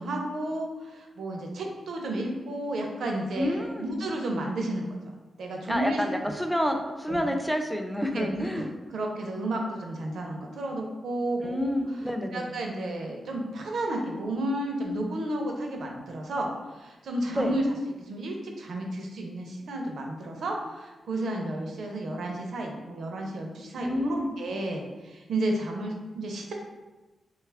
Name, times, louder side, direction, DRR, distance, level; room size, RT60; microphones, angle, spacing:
voice 1, 0.0-5.0 5.4-6.0 6.3-6.4 7.1-7.2 8.1-11.7 12.3-17.6 18.1-26.5, right 1 dB, 85° right, 1 dB, 0.5 m, -32 dB
voice 2, 3.4-4.0 5.7-8.7 11.4-12.5 17.3-17.6 23.7-24.3, equal, ahead, 4 dB, 0.3 m, -29 dB
3.0 x 2.4 x 3.3 m, 1.1 s
cardioid pair, 95°, 0 cm